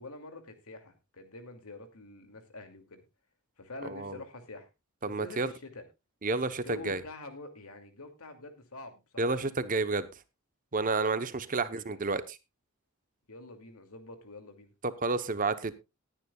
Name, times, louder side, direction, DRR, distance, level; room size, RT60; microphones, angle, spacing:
voice 1, 0.0-3.0 3.6-4.7 5.0-5.8 6.5-9.5 11.0-12.0 13.3-14.7, left 2 dB, 85° left, 7 dB, 2.5 m, -47 dB
voice 2, 3.8-4.2 5.0-5.5 6.2-7.0 9.2-10.1 10.7-12.2 14.8-15.7, right 3 dB, 40° right, 12 dB, 0.9 m, -30 dB
19.5 x 9.8 x 2.3 m, 0.24 s
head